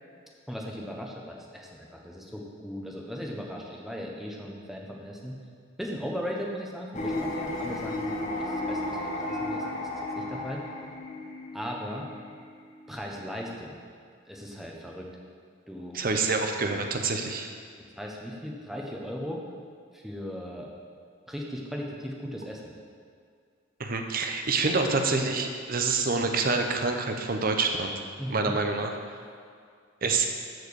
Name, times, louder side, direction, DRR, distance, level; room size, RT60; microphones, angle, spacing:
voice 1, 0.5-5.4 5.8-10.6 11.5-12.1 12.9-13.8 14.3-15.1 15.7-16.1 17.8-19.4 19.9-20.7 21.3-22.7 24.7-24.9 28.2-28.6, equal, ahead, -1 dB, 1.0 m, -37 dB
sound 1, 6.9-13.3, left 1 dB, 35° left, 1.0 m, -34 dB
voice 2, 15.9-17.5 23.8-27.9 28.3-28.9 30.0-30.3, right 3 dB, 45° right, 4 dB, 0.8 m, -27 dB
14.0 x 4.6 x 4.8 m, 2.1 s
head